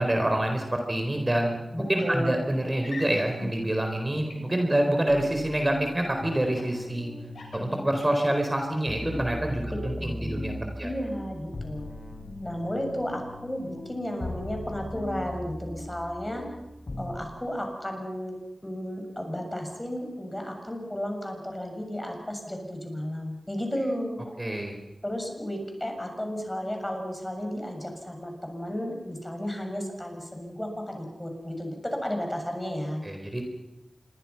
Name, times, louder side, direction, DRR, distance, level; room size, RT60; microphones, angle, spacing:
voice 1, 0.0-1.6 1.9-7.1 7.5-10.9 24.4-24.8 33.0-33.4, right 1 dB, 25° right, 3 dB, 4.1 m, -27 dB
voice 2, 1.7-2.4 9.7-10.5 10.8-11.9 12.4-16.4 17.0-24.3 25.0-33.1, equal, 15° left, 3 dB, 7.1 m, -33 dB
sound 1, 2.0-2.2 2.8-3.5 4.3-4.9 6.4-6.7 7.2-8.3 8.8-9.2, left 2 dB, 90° left, 7.8 m, -40 dB
sound 2, 5.1-17.1, left 1 dB, 55° left, 6.8 m, -39 dB
27.0 x 23.0 x 5.9 m, 1.0 s
wide cardioid pair, 55°, 0 cm